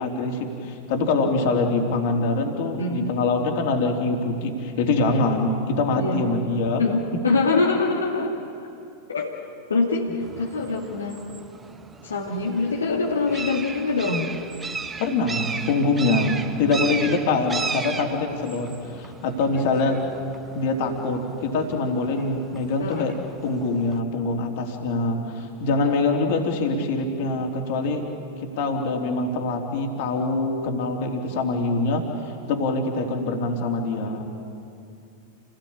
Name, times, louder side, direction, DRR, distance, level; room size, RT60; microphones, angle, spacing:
voice 1, 0.0-6.8 15.0-20.0 20.5-23.2 23.4-28.1 28.4-34.3, left 3 dB, 50° left, 2 dB, 3.5 m, -24 dB
voice 2, 5.9-6.2 6.8-8.4 9.1-9.3 9.7-11.2 12.0-14.3 22.8-23.1, left 3 dB, 70° left, -1 dB, 2.2 m, -24 dB
sound 1, 10.2-24.0, right 4 dB, 15° right, 1.3 m, -36 dB
29.5 x 18.0 x 8.9 m, 2.5 s
figure-of-eight pair, 90°, 0 cm